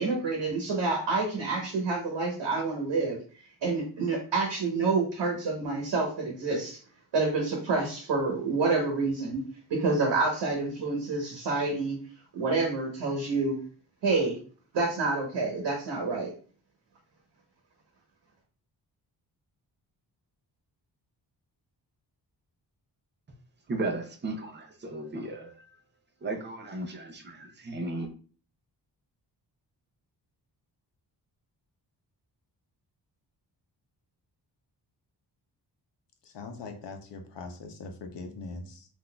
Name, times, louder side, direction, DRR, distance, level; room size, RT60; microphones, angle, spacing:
voice 1, 0.0-3.2 3.6-6.8 7.1-9.4 9.7-12.0 12.3-13.6 14.0-14.3 14.7-16.3, right 3 dB, 85° right, 1.0 m, -28 dB
voice 2, 23.7-25.8 26.2-28.1, right 2 dB, 25° right, 0.5 m, -35 dB
voice 3, 36.3-38.9, left 3 dB, 80° left, 0.7 m, -41 dB
3.8 x 2.5 x 2.2 m
wide cardioid pair, 180°, 42 cm